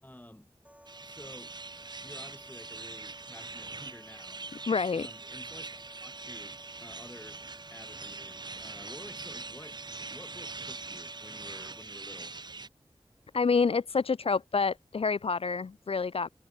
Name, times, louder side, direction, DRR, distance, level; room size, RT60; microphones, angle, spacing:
voice 1, 0.0-0.5 1.0-1.5 2.0-4.4 4.9-6.5 6.8-7.4 7.7-9.8 10.1-12.4, left 1 dB, 15° left, 2.8 m, -51 dB
sound 1, 0.6-11.8, right 1 dB, 10° right, 6.0 m, -55 dB
sound 2, 0.9-12.7, right 3 dB, 45° right, 0.5 m, -43 dB
voice 2, 4.7-5.1 13.3-16.3, left 5 dB, 65° left, 0.4 m, -28 dB
wide cardioid pair, 55°, 10 cm